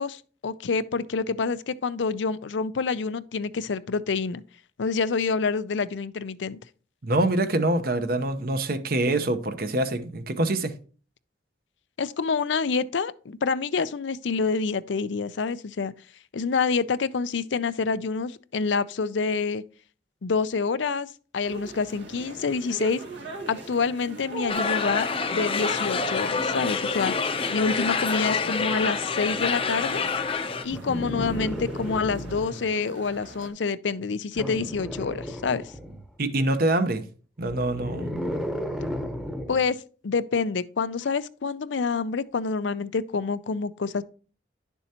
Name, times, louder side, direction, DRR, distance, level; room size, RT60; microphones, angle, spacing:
voice 1, 0.0-4.4 4.8-6.6 12.0-15.9 16.3-19.6 20.2-23.0 23.5-27.1 27.5-30.0 30.6-35.7 39.5-39.8 40.0-44.0, left 4 dB, 90° left, 0.5 m, -27 dB
voice 2, 7.0-10.7 36.2-37.0 37.4-38.1, right 2 dB, 55° right, 0.9 m, -25 dB
sound 1, 21.4-33.5, right 2 dB, 80° right, 2.1 m, -41 dB
sound 2, 24.5-30.6, left 5 dB, 30° left, 0.6 m, -27 dB
sound 3, 30.7-32.7 34.3-36.1 37.4-39.7 41.0-41.1, equal, 5° right, 0.9 m, -33 dB
10.5 x 7.0 x 2.9 m
head